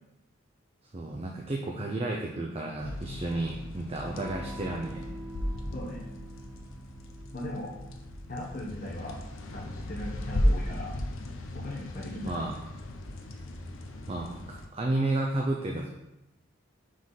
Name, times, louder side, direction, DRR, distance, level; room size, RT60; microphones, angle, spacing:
voice 1, 0.9-5.0 12.2-12.5 14.1-15.9, right 2 dB, 30° right, 0 dB, 0.5 m, -32 dB
sound 1, 2.8-14.7, left 1 dB, 90° left, 0.7 m, -35 dB
Electric guitar / Strum, 4.1-12.4, right 1 dB, 15° left, 1.0 m, -47 dB
voice 2, 5.7-6.1 7.3-7.7 8.3-9.2 9.5-10.9 11.5-12.4, left 1 dB, 40° left, -4 dB, 1.0 m, -38 dB
5.2 x 3.9 x 5.6 m, 0.93 s
head